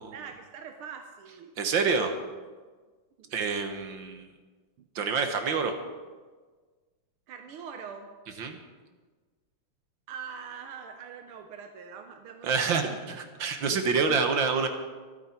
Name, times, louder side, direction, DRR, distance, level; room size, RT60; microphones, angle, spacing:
voice 1, 0.1-2.0 3.2-3.4 4.8-4.9 7.3-8.1 10.1-13.0, right 6 dB, 90° right, 5 dB, 1.8 m, -43 dB
voice 2, 1.6-2.1 3.3-4.3 5.0-5.7 8.4-8.6 12.4-14.7, right 5 dB, 65° right, 6 dB, 2.0 m, -27 dB
23.5 x 9.4 x 4.5 m, 1.4 s
omnidirectional pair, 2.3 m